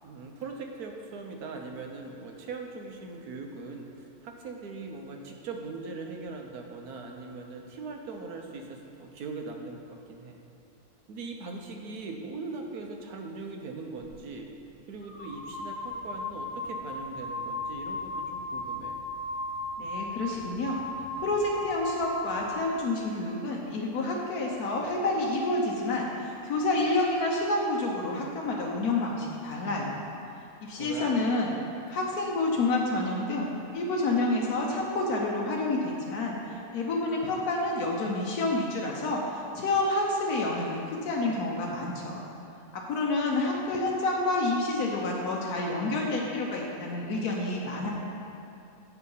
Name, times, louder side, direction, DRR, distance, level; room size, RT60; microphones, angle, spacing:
voice 1, 0.0-10.4 11.1-14.5 14.9-19.0 30.7-31.1 43.6-43.8, right 3 dB, 85° right, 2 dB, 1.4 m, -40 dB
sound 1, 14.0-14.2 15.0-22.7, left 1 dB, 30° left, 0.5 m, -36 dB
voice 2, 19.8-20.8 21.2-30.0 30.6-31.6 31.9-42.2 42.7-47.9, left 2 dB, 80° left, -2 dB, 1.4 m, -29 dB
8.3 x 5.7 x 5.5 m, 2.7 s
omnidirectional pair, 1.6 m